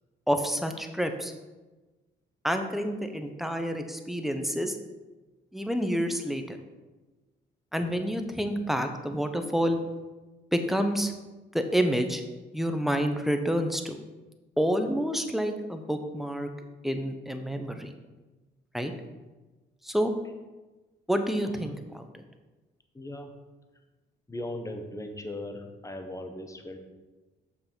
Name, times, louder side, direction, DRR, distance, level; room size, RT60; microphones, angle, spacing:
voice 1, 0.3-1.3 2.4-4.8 5.5-6.6 7.7-9.8 10.5-11.1 11.5-12.2 12.5-14.0 14.6-16.5 16.8-17.9 18.7-18.9 19.8-20.1 21.1-22.1, equal, ahead, 6 dB, 0.9 m, -28 dB
voice 2, 22.9-23.3 24.3-26.8, left 1 dB, 15° left, 5 dB, 1.2 m, -38 dB
6.8 x 5.7 x 5.6 m, 1.2 s
cardioid pair, 90°, 20 cm